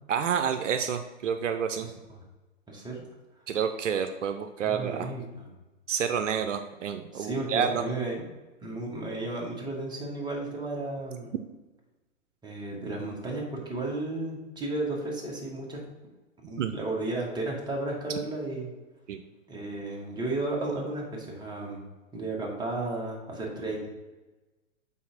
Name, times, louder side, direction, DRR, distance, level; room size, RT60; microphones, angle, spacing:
voice 1, 0.1-1.9 3.5-5.1 5.9-7.8 16.6-16.7 19.1-19.2, right 7 dB, 65° right, 7 dB, 0.6 m, -29 dB
voice 2, 1.8-2.2 2.7-3.0 4.6-5.5 7.1-8.2 8.6-11.3 12.4-15.8 16.4-18.7 19.5-21.8 22.1-23.9, right 2 dB, 10° right, -2 dB, 1.4 m, -33 dB
5.6 x 4.0 x 5.7 m, 1.1 s
hypercardioid pair, 125°, 40 cm